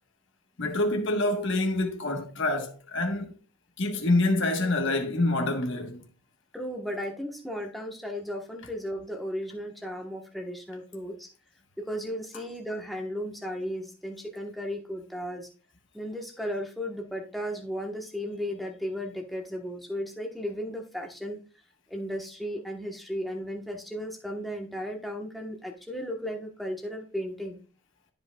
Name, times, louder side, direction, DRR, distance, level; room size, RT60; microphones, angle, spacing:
voice 1, 0.6-3.3 3.8-6.0, left 2 dB, 55° left, 1.3 m, -26 dB
voice 2, 6.5-11.3 11.8-15.5 15.9-21.4 21.9-27.6, equal, ahead, 1.2 m, -35 dB
12.5 x 5.5 x 2.3 m
head